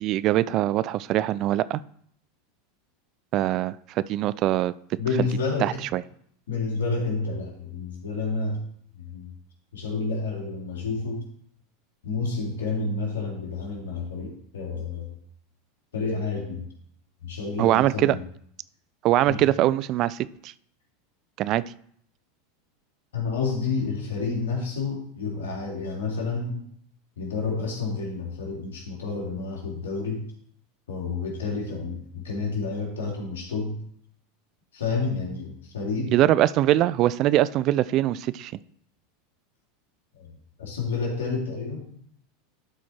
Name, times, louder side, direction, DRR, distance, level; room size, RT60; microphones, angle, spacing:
voice 1, 0.0-1.8 3.3-4.7 5.6-6.0 17.6-18.2 19.0-20.5 21.4-21.6 36.1-38.5, right 14 dB, 50° right, 18 dB, 0.4 m, -22 dB
voice 2, 5.0-5.8 6.5-8.6 8.9-9.3 9.7-11.2 12.0-15.1 15.9-16.7 17.2-18.2 19.3-19.4 23.1-26.6 27.2-30.2 30.9-33.8 34.7-36.2 40.2-41.9, left 4 dB, 80° left, -1 dB, 2.9 m, -30 dB
11.5 x 4.6 x 4.4 m, 0.66 s
hypercardioid pair, 90°, 0 cm